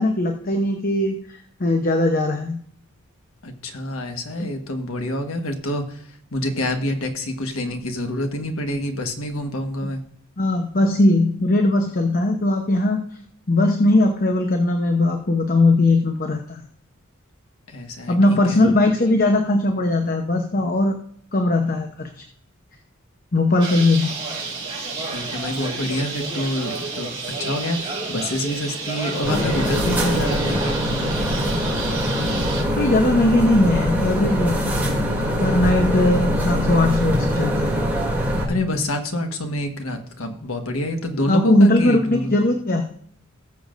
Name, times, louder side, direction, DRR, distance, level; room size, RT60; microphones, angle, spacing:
voice 1, 0.0-2.6 4.4-4.5 10.4-13.0 13.5-16.6 18.1-20.9 21.3-22.2 23.3-24.1 32.8-34.8 35.4-37.8 41.3-42.9, left 2 dB, 45° left, 4 dB, 0.9 m, -19 dB
voice 2, 3.4-10.0 17.7-18.6 25.0-31.1 38.5-42.4, left 1 dB, 80° left, 5 dB, 1.4 m, -27 dB
Bird, 23.6-32.6, right 3 dB, 25° right, 5.1 m, -30 dB
sound 1, 29.2-38.5, equal, 10° right, 2.7 m, -23 dB
19.0 x 7.0 x 2.6 m, 0.63 s
head